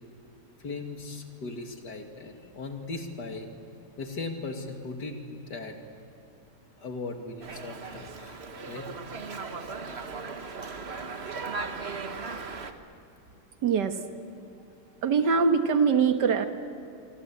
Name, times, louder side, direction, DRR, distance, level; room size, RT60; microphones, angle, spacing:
voice 1, 0.6-3.5 4.0-5.8 6.8-8.9, left 3 dB, 75° left, 4 dB, 2.9 m, -38 dB
Dog, 7.4-12.7, right 4 dB, 40° right, 1.5 m, -37 dB
voice 2, 13.6-14.0 15.0-16.5, right 5 dB, 80° right, 8 dB, 2.1 m, -23 dB
25.5 x 25.5 x 8.6 m, 2.6 s
omnidirectional pair, 1.8 m